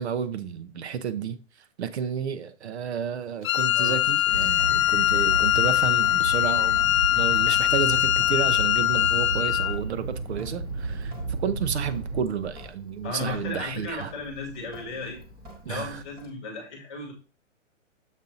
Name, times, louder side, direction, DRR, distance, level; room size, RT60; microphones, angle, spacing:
voice 1, 0.0-1.4 1.8-11.1 11.4-14.1 15.6-16.0, right 7 dB, 55° right, 0.9 m, -31 dB
Wind instrument woodwind instrument, 3.4-9.8, left 14 dB, 85° left, 0.6 m, -22 dB
Sink (filling or washing) / Drip, 3.8-16.3, equal, 10° right, 0.9 m, -48 dB
sound 1, 4.3-12.2, right 3 dB, 85° right, 3.1 m, -33 dB
voice 2, 13.0-15.2 15.7-17.1, left 3 dB, 5° left, 0.5 m, -35 dB
7.3 x 4.3 x 4.0 m
hypercardioid pair, 170°, 39 cm